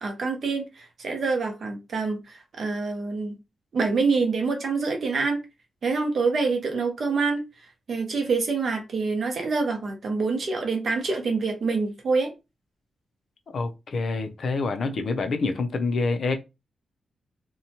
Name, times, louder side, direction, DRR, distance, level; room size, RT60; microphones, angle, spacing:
voice 1, 0.0-3.4 3.7-5.4 5.8-7.4 7.9-12.3, right 4 dB, 45° right, 0.7 m, -26 dB
voice 2, 13.5-16.3, left 3 dB, 50° left, 0.4 m, -27 dB
2.7 x 2.2 x 2.8 m
wide cardioid pair, 165°, 0 cm